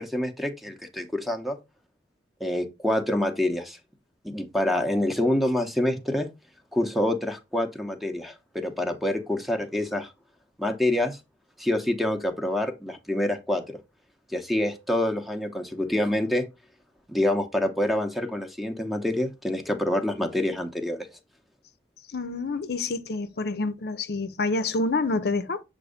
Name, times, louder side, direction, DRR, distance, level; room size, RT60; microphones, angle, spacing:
voice 1, 0.0-1.6 2.4-3.8 4.2-6.3 6.7-10.1 10.6-11.2 11.6-13.8 14.3-16.5 17.1-21.1, left 1 dB, ahead, 0.7 m, -26 dB
voice 2, 22.1-25.6, left 3 dB, 65° left, 0.6 m, -27 dB
7.3 x 2.6 x 5.0 m
head